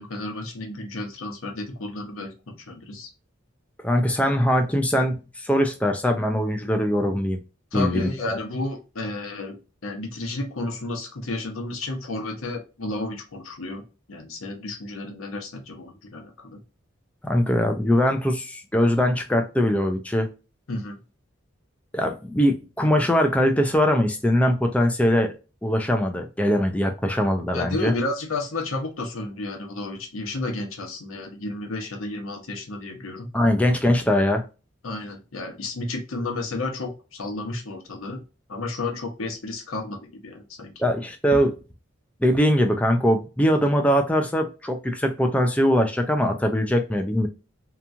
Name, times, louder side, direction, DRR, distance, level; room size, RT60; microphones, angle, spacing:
voice 1, 0.0-3.1 7.7-16.6 20.7-21.0 27.5-33.3 34.8-38.2 38.5-40.7, left 2 dB, 85° left, 3 dB, 0.8 m, -32 dB
voice 2, 3.8-7.4 7.7-8.4 17.2-20.3 21.9-25.3 25.6-27.9 33.3-34.4 40.8-41.6 42.2-47.3, equal, 5° left, 4 dB, 0.4 m, -22 dB
2.9 x 2.3 x 2.5 m, 0.31 s
head